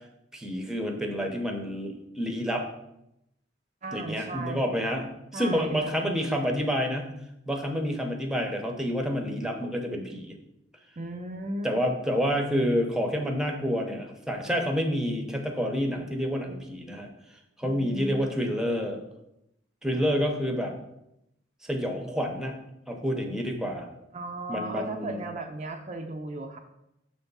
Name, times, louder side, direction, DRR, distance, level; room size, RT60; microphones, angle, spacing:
voice 1, 0.3-2.6 3.9-7.1 7.5-10.4 11.6-17.1 17.6-19.0 19.8-20.7 21.6-22.5 22.9-23.9 24.5-25.2, equal, 5° right, 3 dB, 0.7 m, -28 dB
voice 2, 3.8-4.8 5.3-5.9 11.0-11.7 17.6-18.3 24.1-26.6, right 2 dB, 40° right, 4 dB, 0.5 m, -36 dB
6.3 x 3.5 x 5.4 m, 0.83 s
head